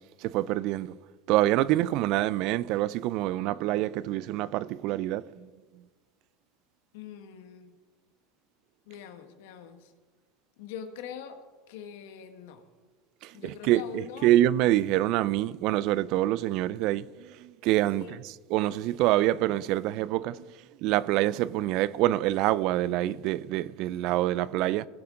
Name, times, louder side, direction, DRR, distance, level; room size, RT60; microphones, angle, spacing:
voice 1, 0.2-0.9 1.3-5.5 13.2-18.2 18.5-20.4 20.8-24.9, right 14 dB, 60° right, 0.4 m, -26 dB
voice 2, 6.9-7.7 8.9-9.9 10.6-11.4 11.7-12.6 13.3-14.3 18.0-18.2, left 8 dB, 75° left, 1.3 m, -43 dB
17.5 x 7.8 x 3.8 m
supercardioid pair, 110°, 0 cm